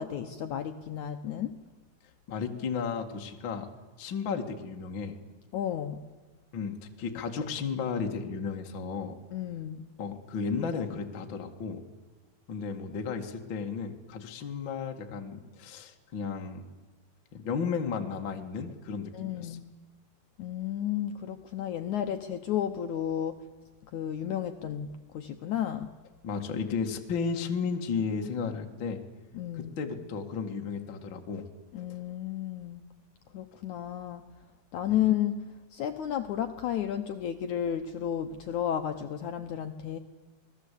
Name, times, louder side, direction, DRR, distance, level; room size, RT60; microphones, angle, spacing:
voice 1, 0.0-1.5 5.5-6.0 9.3-9.9 19.1-19.7 20.4-23.4 23.9-25.9 29.3-29.8 31.7-32.8 33.3-34.2 34.7-35.4 35.7-40.0, left 10 dB, 75° left, 7 dB, 1.8 m, -32 dB
voice 2, 2.3-3.7 4.0-5.2 6.5-9.2 10.0-11.8 12.5-16.6 17.3-19.6 26.2-29.0 29.5-31.4 34.9-35.0, left 5 dB, 40° left, 4 dB, 2.1 m, -34 dB
28.0 x 19.5 x 8.5 m, 1.3 s
omnidirectional pair, 4.7 m